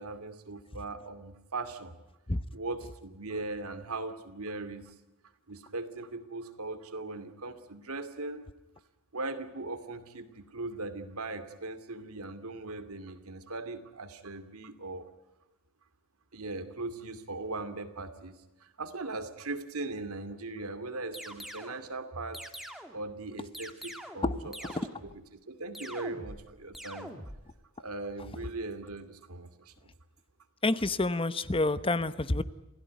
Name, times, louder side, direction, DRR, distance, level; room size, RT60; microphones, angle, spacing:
voice 1, 0.0-2.0 2.5-4.9 5.5-8.4 9.1-15.0 16.3-22.4 22.9-24.7 25.0-27.1 27.8-29.7, right 2 dB, 75° right, 10 dB, 2.5 m, -39 dB
sound 1, 21.1-21.8 22.3-23.1 23.5-24.3 24.5-25.2 25.7-26.5 26.7-27.4, equal, ahead, 2.3 m, -44 dB
voice 2, 30.6-32.4, left 2 dB, 25° left, 14 dB, 0.9 m, -28 dB
28.0 x 16.5 x 9.4 m, 1.0 s
head